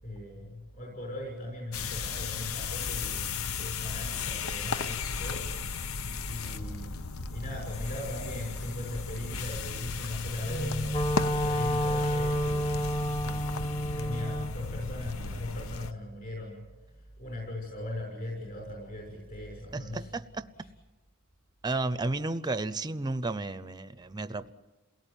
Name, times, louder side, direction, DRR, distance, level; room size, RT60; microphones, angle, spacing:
voice 1, 0.0-5.5 6.2-12.9 13.2-20.2 20.5-20.7 21.6-21.8, left 1 dB, 40° left, 6.3 m, -39 dB
sound 1, 1.7-15.9, left 4 dB, 70° left, 0.9 m, -35 dB
Wind instrument woodwind instrument, 10.5-14.6, equal, 25° left, 1.0 m, -30 dB
voice 2, 19.7-20.5 21.6-24.5, right 2 dB, 20° right, 0.7 m, -32 dB
28.5 x 18.5 x 9.1 m
head